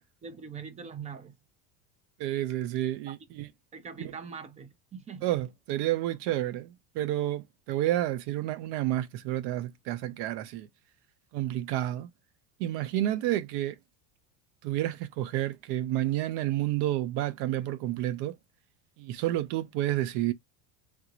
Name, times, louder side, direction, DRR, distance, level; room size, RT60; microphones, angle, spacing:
voice 1, 0.2-1.3 3.1-3.2 3.7-5.4, right 6 dB, 15° right, 0.4 m, -42 dB
voice 2, 2.2-3.5 4.0-4.1 5.2-10.7 11.3-12.1 12.6-13.8 14.6-18.4 19.0-20.3, right 14 dB, 55° right, 0.7 m, -30 dB
3.5 x 2.5 x 2.9 m
supercardioid pair, 140°, 48 cm